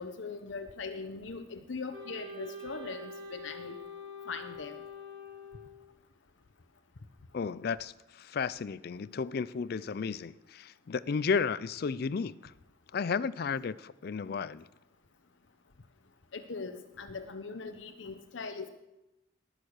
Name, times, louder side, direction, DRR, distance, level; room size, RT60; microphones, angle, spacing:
voice 1, 0.0-3.8 4.3-4.8 16.3-18.7, left 4 dB, 75° left, 0.8 m, -40 dB
Wind instrument woodwind instrument, 1.9-5.9, left 2 dB, 60° right, 3.2 m, -45 dB
voice 2, 7.3-12.5 12.9-14.7, left 5 dB, 55° left, 0.4 m, -33 dB
19.5 x 6.5 x 6.5 m
head